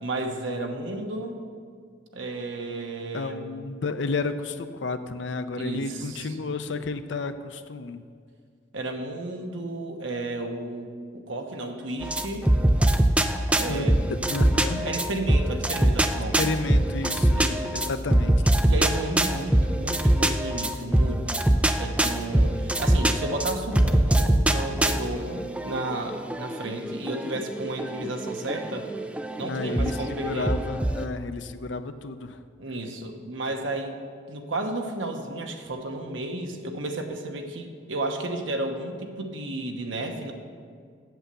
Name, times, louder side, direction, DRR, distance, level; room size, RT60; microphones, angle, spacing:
voice 1, 0.0-1.4 2.1-3.5 5.6-6.6 8.7-12.5 13.5-14.0 14.8-16.5 17.3-17.8 18.6-28.9 29.4-30.5 32.6-34.0 34.3-40.3, right 2 dB, 80° right, 4 dB, 1.1 m, -33 dB
voice 2, 3.1-8.0 13.7-13.9 14.3-14.9 16.4-18.3 29.5-32.4, left 3 dB, 70° left, 10 dB, 0.5 m, -31 dB
sound 1, 12.0-31.0, right 1 dB, 5° right, 0.3 m, -24 dB
8.0 x 7.6 x 6.8 m, 2.1 s
head